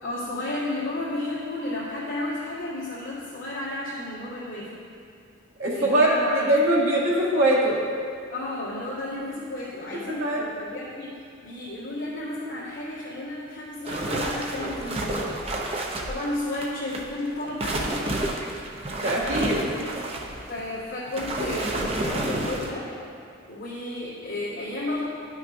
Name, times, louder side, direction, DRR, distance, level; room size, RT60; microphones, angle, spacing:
voice 1, 0.0-4.7 5.7-6.5 8.3-11.1 11.4-15.4 16.0-18.3 20.5-22.9 23.5-25.1, left 1 dB, 60° left, -12 dB, 1.6 m, -32 dB
voice 2, 5.6-7.8 10.2-10.4 18.9-19.9, right 1 dB, 85° right, -5 dB, 1.7 m, -22 dB
sound 1, 13.8-17.0 17.4-22.7, right 2 dB, 30° right, 0.6 m, -30 dB
11.0 x 5.9 x 2.6 m, 2.6 s
head